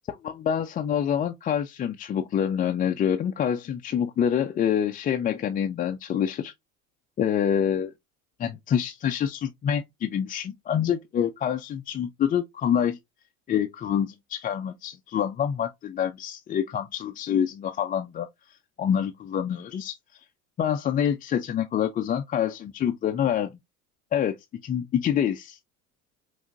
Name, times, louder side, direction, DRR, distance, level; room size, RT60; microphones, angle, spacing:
voice 1, 0.1-6.5 7.2-7.9 8.4-13.0 13.5-18.3 18.8-20.0 20.6-23.5 24.1-24.4 24.6-25.6, left 9 dB, 20° left, 0.4 m, -26 dB
5.6 x 2.6 x 2.5 m
hypercardioid pair, 75°, 42 cm